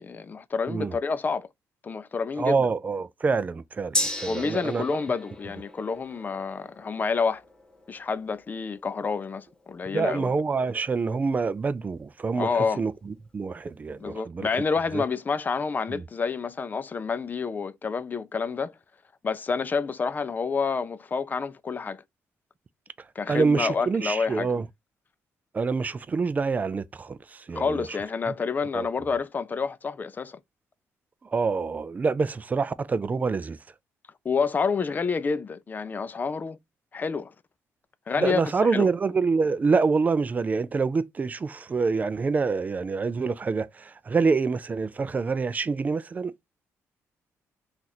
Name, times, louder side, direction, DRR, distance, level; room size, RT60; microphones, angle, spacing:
voice 1, 0.0-1.5 1.8-2.7 4.3-7.4 7.9-10.3 12.4-12.8 14.0-18.7 19.2-22.0 23.2-24.5 27.5-30.4 34.2-36.6 36.9-37.3 38.1-38.9, left 5 dB, 30° left, 0.4 m, -28 dB
voice 2, 2.4-4.8 9.9-12.5 12.8-14.5 14.9-15.0 15.9-16.0 23.3-24.6 25.5-27.8 28.7-28.9 31.3-33.6 38.2-46.3, right 4 dB, 30° right, 0.4 m, -26 dB
Gong, 3.9-11.7 12.0-12.1, left 1 dB, 15° left, 0.9 m, -37 dB
2.9 x 2.5 x 3.9 m
cardioid pair, 90°, 6 cm